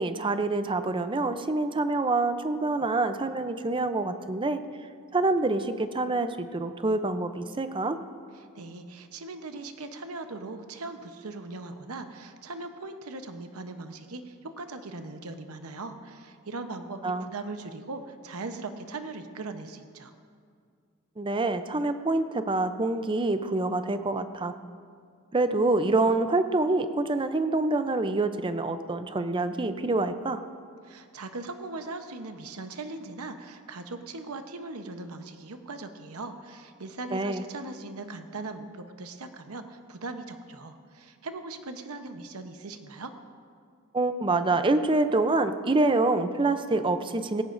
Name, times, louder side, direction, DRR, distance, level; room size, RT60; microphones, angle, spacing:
voice 1, 0.0-4.6 5.1-8.0 17.0-17.2 21.2-24.5 25.3-30.4 37.1-37.4 43.9-47.4, right 2 dB, 25° right, 10 dB, 0.5 m, -26 dB
voice 2, 8.3-20.1 30.8-43.1, right 3 dB, 90° right, 7 dB, 0.9 m, -39 dB
18.0 x 16.5 x 2.6 m, 2.2 s
head